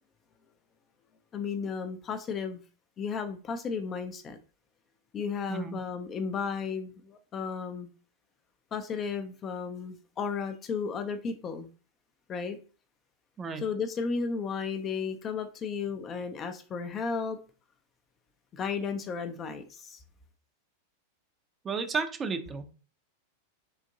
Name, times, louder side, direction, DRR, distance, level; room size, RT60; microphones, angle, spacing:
voice 1, 1.3-2.6 3.0-4.4 5.1-7.9 8.7-11.7 12.3-12.6 13.6-17.4 18.5-20.0, left 5 dB, 25° left, 0.4 m, -34 dB
voice 2, 5.5-5.8 13.4-13.6 21.6-22.7, right 5 dB, 20° right, 0.5 m, -33 dB
3.8 x 2.5 x 2.7 m
figure-of-eight pair, 90°, 0 cm